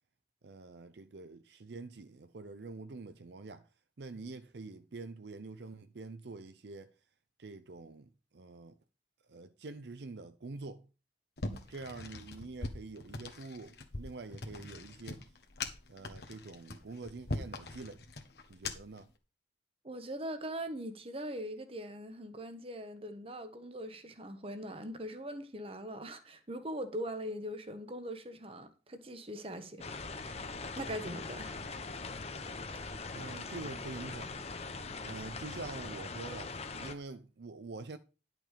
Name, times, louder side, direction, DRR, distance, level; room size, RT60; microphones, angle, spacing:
voice 1, 0.4-3.7 4.0-6.9 7.4-8.8 9.3-10.9 11.7-15.3 15.9-18.0 18.5-19.1 33.1-34.3 35.0-38.0, right 3 dB, 70° right, 0.6 m, -46 dB
sound 1, 11.4-19.0, left 2 dB, 65° left, 1.5 m, -42 dB
voice 2, 19.8-29.8 30.1-30.4 30.8-31.6, equal, 35° right, 1.3 m, -41 dB
sound 2, 29.8-36.9, left 3 dB, 35° left, 0.8 m, -42 dB
11.0 x 6.0 x 5.0 m
head